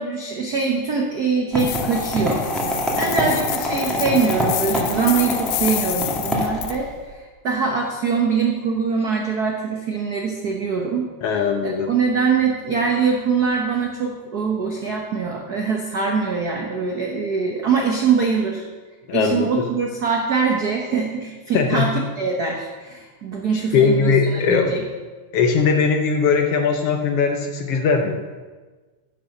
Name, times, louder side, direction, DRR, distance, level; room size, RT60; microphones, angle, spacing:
voice 1, 0.0-7.2 7.4-11.1 11.6-18.7 19.1-24.8, right 5 dB, 70° right, 1 dB, 0.9 m, -23 dB
sound 1, 1.5-7.0, left 1 dB, ahead, 1.5 m, -25 dB
sound 2, 1.6-6.8, left 15 dB, 90° left, 2.0 m, -29 dB
voice 2, 11.2-11.9 19.1-19.6 21.5-21.9 23.5-24.7 25.3-28.2, left 5 dB, 70° left, 5 dB, 1.6 m, -19 dB
10.0 x 7.5 x 6.5 m, 1.3 s
omnidirectional pair, 3.3 m